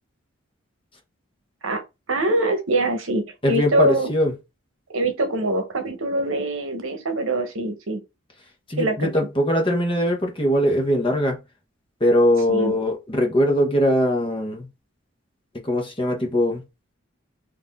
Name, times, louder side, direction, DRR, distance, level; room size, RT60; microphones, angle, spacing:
voice 1, 2.1-4.1 4.9-8.0 8.8-9.1 12.5-12.7, right 2 dB, 75° right, 1.0 m, -23 dB
voice 2, 3.4-4.3 8.7-11.4 12.0-14.7 15.6-16.6, equal, 25° left, 0.8 m, -21 dB
4.2 x 2.6 x 3.5 m
head